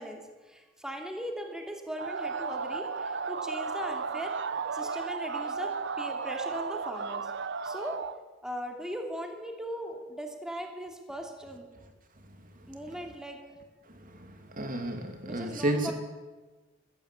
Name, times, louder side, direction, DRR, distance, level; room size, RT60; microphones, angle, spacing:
voice 1, 0.0-4.3 4.7-7.3 7.6-8.0 8.4-11.7 12.7-13.4 15.2-15.9, equal, 5° right, 3 dB, 2.8 m, -39 dB
sound 1, 2.0-8.2, right 5 dB, 60° right, 0.9 m, -34 dB
voice 2, 12.3-12.7 13.9-15.9, right 1 dB, 45° right, 5 dB, 2.4 m, -33 dB
21.5 x 15.5 x 8.2 m, 1.2 s
head